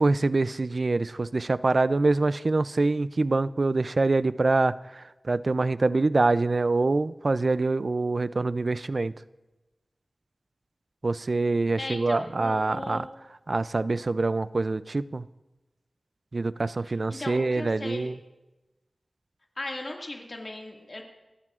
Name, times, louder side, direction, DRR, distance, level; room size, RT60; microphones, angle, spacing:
voice 1, 0.0-9.1 11.0-13.1 13.5-15.3 16.3-18.2, right 3 dB, 55° right, 16 dB, 0.4 m, -25 dB
voice 2, 11.8-13.0 16.8-18.1 19.6-21.0, left 2 dB, 50° left, 0 dB, 2.0 m, -37 dB
27.5 x 13.5 x 2.4 m, 1.1 s
wide cardioid pair, 70°, 0 cm